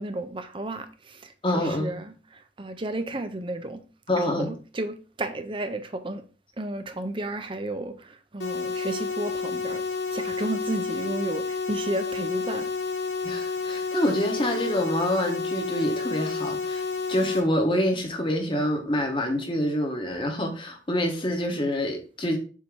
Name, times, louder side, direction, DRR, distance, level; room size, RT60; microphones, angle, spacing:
voice 1, 0.0-3.8 4.2-6.2 6.6-9.8 10.1-12.7, right 2 dB, 25° right, 0.6 m, -33 dB
voice 2, 1.4-2.0 4.1-4.5 13.2-16.8 17.1-22.4, equal, 25° left, 1.1 m, -26 dB
sound 1, 8.4-17.4, left 4 dB, 75° left, 1.3 m, -30 dB
7.4 x 2.8 x 4.7 m
head